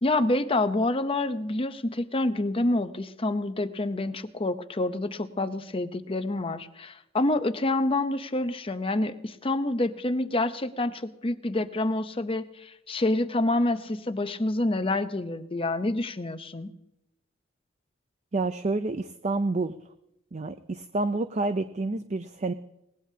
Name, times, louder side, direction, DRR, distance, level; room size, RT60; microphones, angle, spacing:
voice 1, 0.0-16.7, left 2 dB, 30° left, 10 dB, 0.7 m, -27 dB
voice 2, 18.3-19.7 20.3-22.5, right 3 dB, 35° right, 10 dB, 0.5 m, -28 dB
20.5 x 18.0 x 2.8 m, 0.85 s
head